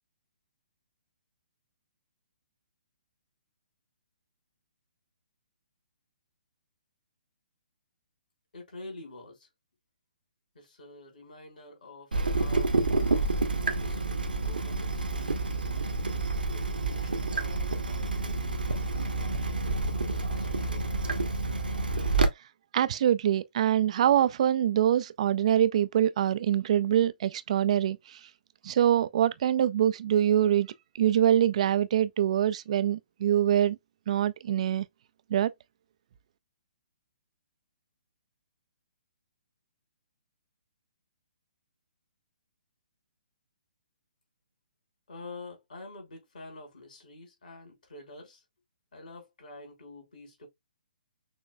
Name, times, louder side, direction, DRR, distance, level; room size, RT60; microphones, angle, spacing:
voice 1, 8.5-9.5 10.5-12.7 13.1-15.5 16.5-19.2 20.1-21.0 45.1-48.4 48.9-50.5, left 2 dB, 65° left, 3.2 m, -48 dB
Water tap faucet / Drip, 12.1-22.3, right 3 dB, 75° right, 1.0 m, -29 dB
voice 2, 22.7-28.0 28.6-33.8 34.1-34.9 35.3-35.5, right 10 dB, 45° right, 0.4 m, -24 dB
6.2 x 3.1 x 2.3 m
figure-of-eight pair, 130°, 5 cm